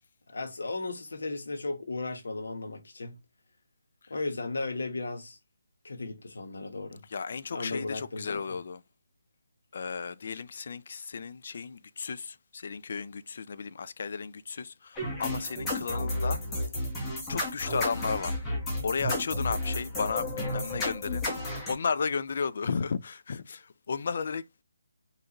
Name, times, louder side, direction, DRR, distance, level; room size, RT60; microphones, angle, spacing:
voice 1, 0.3-3.2 4.1-5.4 5.8-7.0 7.5-8.6, left 3 dB, 75° left, 1.2 m, -35 dB
voice 2, 7.1-8.8 9.7-16.4 17.3-18.4 18.8-21.3 21.7-24.4, left 5 dB, 55° left, 0.4 m, -34 dB
sound 1, 15.0-21.7, left 1 dB, 10° left, 1.1 m, -32 dB
4.1 x 2.6 x 2.9 m
hypercardioid pair, 160°, 0 cm